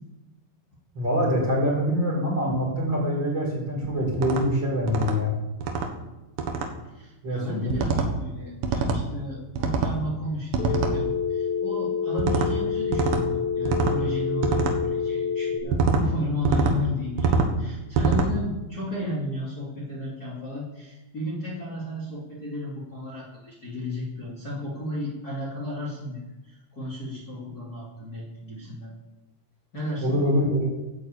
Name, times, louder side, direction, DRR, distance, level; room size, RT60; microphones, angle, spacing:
voice 1, 0.9-5.4 7.2-7.8 30.0-30.7, equal, 30° right, -3 dB, 5.0 m, -24 dB
sound 1, 4.1-4.4 4.9-5.2 5.6-5.9 6.4-6.7 7.7-8.1 8.6-9.0 9.6-10.0 10.5-11.0 12.2-12.5 12.9-13.2 13.7-14.0 14.4-14.8 15.7-16.0 16.5-16.8 17.2-17.5 18.0-18.3, right 4 dB, 75° right, 3.0 m, -24 dB
voice 2, 6.8-28.9 29.7-30.2, left 1 dB, 25° left, -6 dB, 3.0 m, -34 dB
Telephone, 10.6-15.6, left 6 dB, 90° left, 4.2 m, -27 dB
11.5 x 8.9 x 8.5 m, 1.1 s
omnidirectional pair, 4.2 m